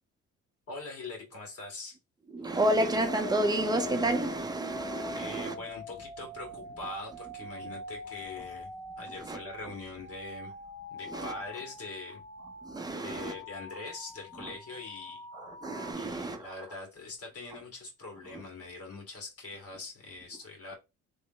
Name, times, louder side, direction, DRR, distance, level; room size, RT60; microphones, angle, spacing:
voice 1, 0.7-2.0 2.4-2.6 5.1-8.7 9.0-10.5 10.9-12.2 12.9-15.3 15.9-20.8, left 3 dB, 50° left, 1.9 m, -43 dB
voice 2, 2.3-5.5 9.3-9.4 11.1-11.3 12.6-13.3 14.4-14.5 15.4-16.5, right 1 dB, 15° right, 0.7 m, -30 dB
sound 1, 3.0-15.9, left 2 dB, 25° left, 1.5 m, -44 dB
3.2 x 2.1 x 3.8 m
cardioid pair, 90°, 31 cm